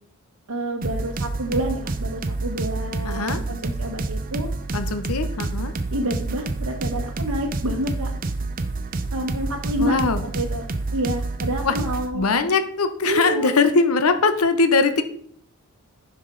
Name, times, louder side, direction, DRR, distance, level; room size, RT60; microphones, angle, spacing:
voice 1, 0.5-4.5 5.9-8.1 9.1-10.0 10.2-10.7 10.9-12.3 13.0-13.5, right 1 dB, 85° right, -2 dB, 1.2 m, -28 dB
sound 1, 0.8-12.1, right 3 dB, 40° right, 0.6 m, -28 dB
voice 2, 3.0-3.4 4.7-5.7 9.8-10.2 11.6-11.8 12.1-15.0, left 4 dB, 80° left, 10 dB, 0.8 m, -21 dB
10.0 x 5.3 x 3.8 m, 0.64 s
head